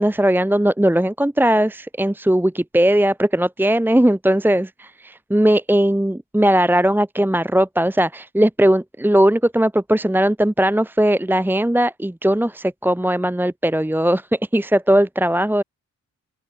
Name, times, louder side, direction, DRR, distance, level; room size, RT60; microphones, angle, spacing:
voice 1, 0.0-15.6, right 1 dB, 5° right, 1.2 m, -18 dB
open air
cardioid pair, 70°, 31 cm